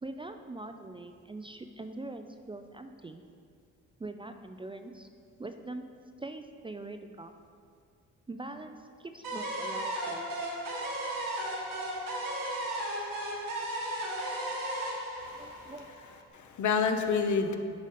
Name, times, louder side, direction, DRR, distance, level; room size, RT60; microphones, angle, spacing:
voice 1, 0.0-3.2 4.0-5.1 5.4-5.9 6.2-7.3 8.3-10.3 15.4-15.9, right 2 dB, 15° right, 7 dB, 0.3 m, -43 dB
sound 1, 9.2-16.2, right 1 dB, 80° right, 1.4 m, -35 dB
voice 2, 15.2-15.7 16.3-17.6, left 5 dB, 65° left, 6 dB, 0.7 m, -29 dB
7.3 x 4.8 x 4.2 m, 2.2 s
supercardioid pair, 65°, 32 cm